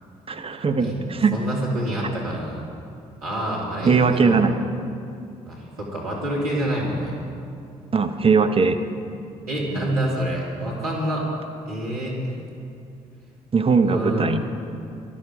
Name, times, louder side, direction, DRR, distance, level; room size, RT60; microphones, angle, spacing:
voice 1, 0.3-1.4 3.8-4.6 7.9-8.8 13.5-14.4, right 5 dB, 30° right, 7 dB, 1.2 m, -19 dB
voice 2, 0.8-2.6 3.2-4.4 5.5-7.2 9.5-11.3 11.7-12.2 13.8-14.4, right 1 dB, 85° right, -5 dB, 2.7 m, -27 dB
19.0 x 13.0 x 5.0 m, 2.5 s
figure-of-eight pair, 45°, 18 cm